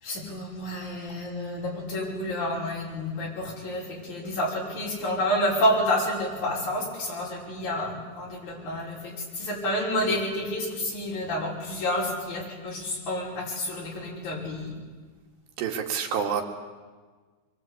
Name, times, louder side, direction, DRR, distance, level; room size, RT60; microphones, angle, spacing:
voice 1, 0.0-14.8, left 1 dB, 45° left, -3 dB, 6.9 m, -29 dB
voice 2, 15.6-16.4, right 7 dB, 75° right, 3 dB, 4.2 m, -27 dB
24.0 x 23.0 x 8.6 m, 1.4 s
omnidirectional pair, 5.0 m